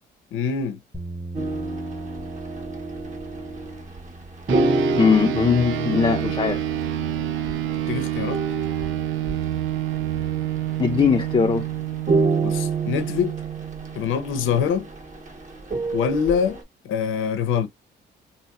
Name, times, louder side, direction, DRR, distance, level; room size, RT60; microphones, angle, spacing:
voice 1, 0.3-0.8 7.9-8.4 12.4-13.4 14.0-14.9 15.9-16.6 16.8-17.7, left 7 dB, 85° left, 0.7 m, -24 dB
sound 1, 0.9-9.0, right 2 dB, ahead, 1.0 m, -41 dB
sound 2, 1.3-16.6, right 2 dB, 40° right, 1.1 m, -29 dB
sound 3, 4.5-14.2, right 12 dB, 75° right, 0.5 m, -28 dB
voice 2, 5.0-6.7 10.8-11.7, left 6 dB, 25° left, 0.4 m, -20 dB
2.9 x 2.8 x 2.6 m
cardioid pair, 90°, 20 cm